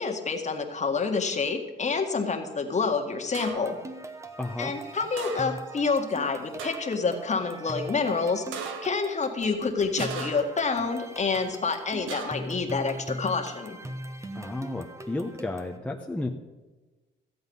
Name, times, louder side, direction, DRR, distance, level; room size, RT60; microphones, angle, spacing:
voice 1, 0.0-3.8 4.6-13.8, left 4 dB, 35° left, 4 dB, 1.8 m, -28 dB
sound 1, 3.3-3.8 5.2-5.7 6.1-6.2 6.6-7.0 8.5-9.1 10.0-10.7 12.1-12.6, right 6 dB, 90° right, 1.2 m, -38 dB
sound 2, 3.5-15.8, right 1 dB, 15° right, 1.1 m, -41 dB
voice 2, 4.4-4.7 14.3-16.3, left 2 dB, 5° left, 2 dB, 0.9 m, -32 dB
15.0 x 8.0 x 5.5 m, 1.2 s
cardioid pair, 90°, 20 cm